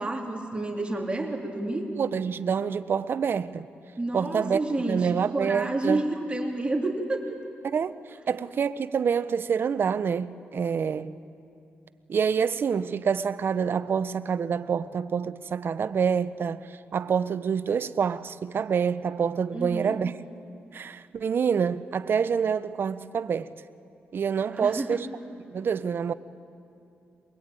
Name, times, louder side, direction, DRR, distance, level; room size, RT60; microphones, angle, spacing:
voice 1, 0.0-1.9 4.0-7.4 19.5-20.0 24.5-25.0, right 2 dB, 25° right, 3.1 m, -29 dB
voice 2, 2.0-3.7 4.1-6.0 7.6-11.1 12.1-20.2 20.7-23.5 24.1-25.1 25.5-26.1, right 6 dB, 55° right, 0.7 m, -27 dB
22.5 x 22.0 x 9.0 m
cardioid pair, 80°, 4 cm